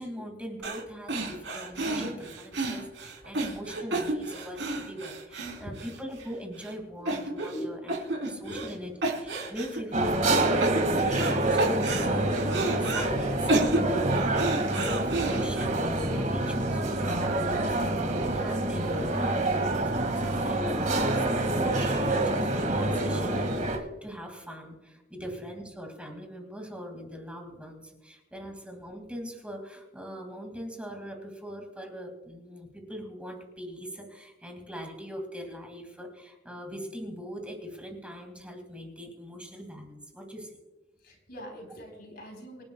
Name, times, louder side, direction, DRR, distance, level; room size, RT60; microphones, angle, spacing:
voice 1, 0.0-8.0 8.3-8.9 9.2-40.6, equal, 5° right, 2 dB, 2.3 m, -41 dB
sound 1, 0.6-0.8 1.1-6.3 6.6-6.7 7.1-7.6 7.9-8.7 9.0-9.8 10.2-11.3 11.6-13.1 13.5-15.6, right 2 dB, 75° right, 3.8 m, -31 dB
voice 2, 5.5-5.8 7.0-7.1 7.5-7.7 8.1-8.6 9.4-9.5 25.2-25.3 41.0-42.6, equal, 60° left, 3 dB, 3.9 m, -42 dB
sound 2, 8.4-8.5 12.2-20.6, equal, 25° right, 3.4 m, -42 dB
sound 3, 9.9-23.8, right 2 dB, 45° right, 2.0 m, -27 dB
26.5 x 10.5 x 2.3 m, 1.0 s
head